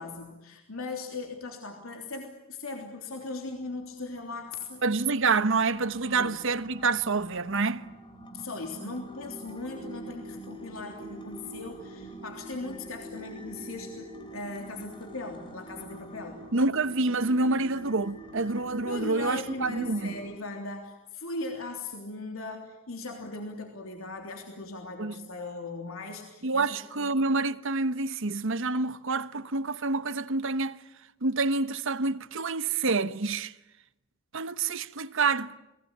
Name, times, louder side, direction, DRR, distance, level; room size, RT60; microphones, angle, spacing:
voice 1, 0.0-4.8 6.1-6.4 8.3-16.4 18.8-27.1, left 3 dB, 85° left, 3.3 m, -39 dB
sound 1, 3.6-20.3, right 1 dB, 25° left, 3.1 m, -45 dB
voice 2, 4.8-7.8 16.5-20.1 25.0-25.2 26.4-30.8 31.2-33.5 34.3-35.6, right 3 dB, 65° right, 1.1 m, -27 dB
29.5 x 20.5 x 8.7 m
head